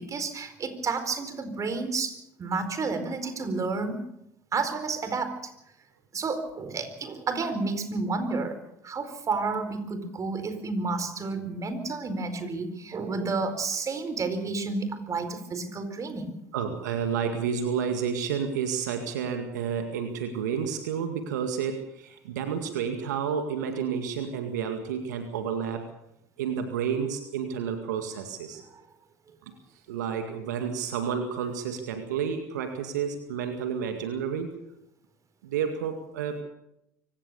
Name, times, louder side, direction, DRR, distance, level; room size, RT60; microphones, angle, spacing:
voice 1, 0.0-4.0 4.5-5.5 6.1-8.6 8.8-16.3, right 4 dB, 35° right, 9 dB, 4.4 m, -31 dB
voice 2, 16.5-25.9 26.4-28.6 29.9-34.6 35.4-36.4, right 7 dB, 85° right, 6 dB, 2.0 m, -30 dB
24.5 x 17.5 x 6.8 m, 0.80 s
hypercardioid pair, 70°, 9 cm